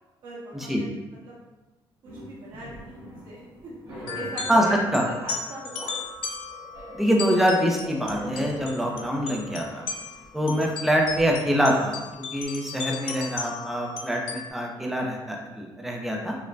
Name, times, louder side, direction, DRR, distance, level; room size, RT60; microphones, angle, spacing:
voice 1, 0.2-1.5 2.0-6.1, right 2 dB, 70° right, -6 dB, 1.3 m, -41 dB
sound 1, 2.0-12.4, equal, 50° right, 1.4 m, -43 dB
sound 2, 4.1-14.5, left 5 dB, 80° left, 0.5 m, -36 dB
voice 2, 4.5-5.0 6.9-9.9 10.3-12.1 12.3-16.4, equal, 5° right, -1 dB, 0.5 m, -24 dB
5.1 x 2.1 x 2.5 m, 1.1 s
cardioid pair, 165°, 9 cm